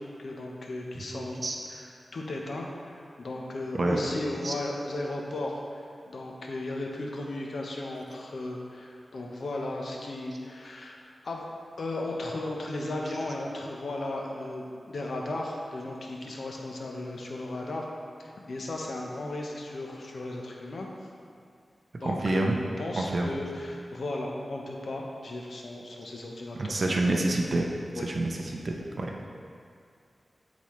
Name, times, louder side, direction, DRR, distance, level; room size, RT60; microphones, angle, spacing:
voice 1, 0.2-1.4 1.7-11.4 11.8-17.9 18.2-20.9 22.0-22.5 22.8-27.0 27.9-28.1, left 2 dB, 75° left, -1 dB, 1.0 m, -35 dB
voice 2, 1.1-1.6 3.7-4.2 4.4-4.5 12.8-13.2 22.0-22.5 23.0-23.3 26.6-27.7 28.0-28.4 28.6-29.3, right 2 dB, 55° right, 1 dB, 0.7 m, -28 dB
11.5 x 4.2 x 3.2 m, 2.3 s
wide cardioid pair, 75°, 0 cm